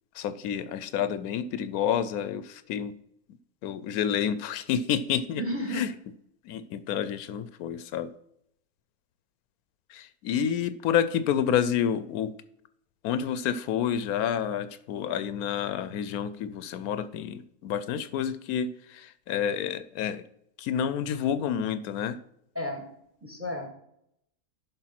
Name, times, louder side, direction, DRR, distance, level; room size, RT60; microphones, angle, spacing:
voice 1, 0.1-2.9 3.6-5.4 5.7-5.9 6.4-8.1 9.9-12.3 13.0-20.2 20.6-22.2, left 8 dB, 85° left, 13 dB, 1.1 m, -29 dB
voice 2, 5.4-5.9 22.5-22.9 23.2-23.7, equal, 10° right, 3 dB, 1.4 m, -32 dB
11.0 x 3.7 x 5.8 m, 0.75 s
omnidirectional pair, 1.5 m